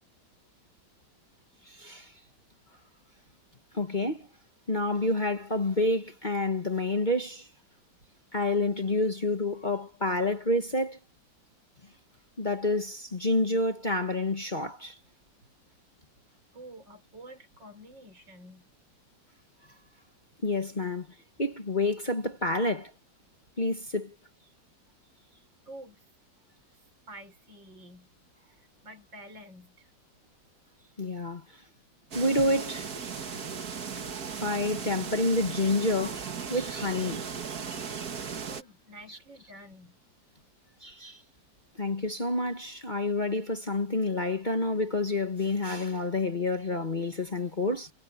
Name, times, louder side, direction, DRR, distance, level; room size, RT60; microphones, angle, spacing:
voice 1, 1.7-2.1 3.7-4.3 4.7-7.5 8.3-11.0 12.4-15.0 20.4-21.1 21.4-22.9 23.6-24.1 31.0-31.6 32.1-32.9 34.4-36.2 36.5-37.2 39.1-39.2 40.8-41.2 41.8-47.9, left 2 dB, 25° left, 1.6 m, -28 dB
voice 2, 16.5-18.7 19.6-19.8 25.7-26.0 27.1-28.1 28.4-29.9 32.0-32.2 38.5-40.0, right 1 dB, 75° right, 5.9 m, -49 dB
sound 1, 32.1-38.6, right 6 dB, 55° right, 2.0 m, -37 dB
omnidirectional pair, 2.0 m